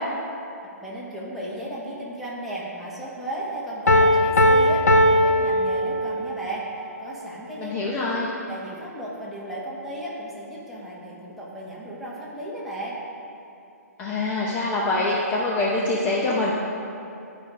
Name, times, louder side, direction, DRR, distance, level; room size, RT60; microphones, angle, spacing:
voice 1, 0.8-6.6 7.0-7.7 8.3-13.0, right 1 dB, ahead, -8 dB, 1.6 m, -34 dB
Piano, 3.9-6.4, left 1 dB, 85° left, 0.8 m, -18 dB
voice 2, 7.6-8.3 14.0-16.5, left 2 dB, 20° left, -5 dB, 0.9 m, -24 dB
11.5 x 4.9 x 5.1 m, 2.7 s
hypercardioid pair, 145°, 9 cm